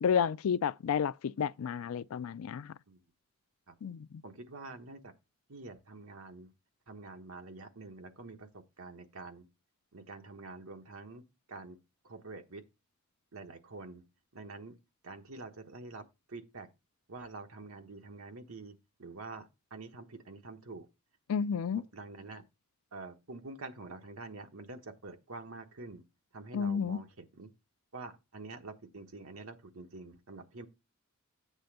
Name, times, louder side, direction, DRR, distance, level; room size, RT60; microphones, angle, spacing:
voice 1, 0.0-2.7 3.8-4.1 21.3-21.8 26.5-27.0, left 7 dB, 80° left, 0.4 m, -31 dB
voice 2, 4.2-5.1 5.5-6.5 6.9-8.5 8.8-9.4 9.9-11.2 11.5-11.8 12.0-12.6 13.3-14.0 14.3-14.7 15.0-16.0 16.3-16.7 17.1-20.9 21.9-22.4 22.9-26.0 26.3-27.5 27.9-30.7, right 3 dB, 80° right, 1.2 m, -46 dB
8.1 x 3.4 x 6.6 m
head